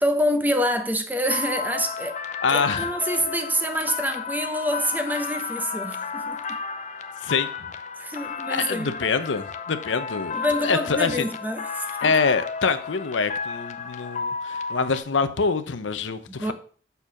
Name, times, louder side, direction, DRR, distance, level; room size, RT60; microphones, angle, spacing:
voice 1, 0.0-2.2 2.5-6.6 8.0-9.0 10.3-12.1 16.3-16.5, equal, 10° right, 0.8 m, -26 dB
sound 1, 1.3-15.0, left 5 dB, 40° left, 0.6 m, -33 dB
voice 2, 2.4-2.9 7.2-7.5 8.5-11.3 12.0-16.5, left 5 dB, 85° left, 0.7 m, -25 dB
6.8 x 4.5 x 5.9 m
head